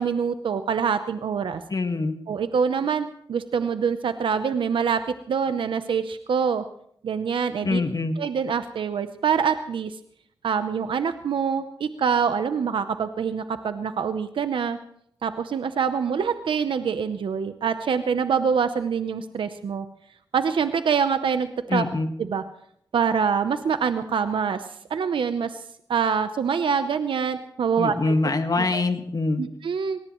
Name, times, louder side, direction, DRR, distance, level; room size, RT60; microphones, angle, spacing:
voice 1, 0.0-1.6 2.3-6.6 7.0-7.8 8.2-9.9 10.4-14.8 15.2-19.9 20.3-21.8 22.2-22.4 22.9-25.6 25.9-28.1 28.6-28.8 29.4-30.0, right 6 dB, 90° right, 10 dB, 0.7 m, -25 dB
voice 2, 1.7-2.2 7.6-8.2 21.7-22.1 27.8-29.4, left 3 dB, 50° left, 7 dB, 1.6 m, -24 dB
25.0 x 18.5 x 3.1 m, 0.68 s
cardioid pair, 60°, 8 cm